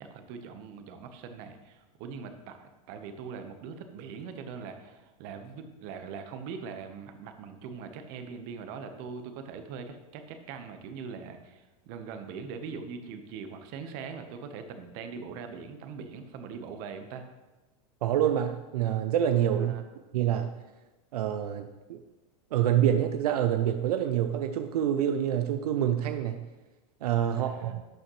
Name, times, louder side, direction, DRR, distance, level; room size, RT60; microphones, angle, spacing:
voice 1, 0.0-17.3 19.5-19.8 27.3-27.7, right 5 dB, 50° right, 7 dB, 1.1 m, -42 dB
voice 2, 18.0-19.7 20.1-20.5 21.1-22.0 22.5-26.4 27.0-27.8, right 10 dB, 85° right, 8 dB, 0.5 m, -27 dB
12.0 x 6.4 x 3.1 m, 1.1 s
supercardioid pair, 130°, 19 cm